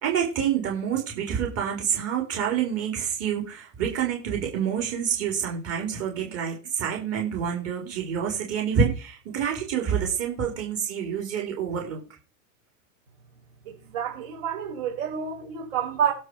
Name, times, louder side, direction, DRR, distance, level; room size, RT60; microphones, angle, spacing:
voice 1, 0.0-12.0, right 7 dB, 35° right, 4.5 m, -27 dB
voice 2, 13.7-16.1, right 8 dB, 60° right, 5.8 m, -29 dB
16.5 x 5.6 x 4.9 m
hypercardioid pair, 115°, 39 cm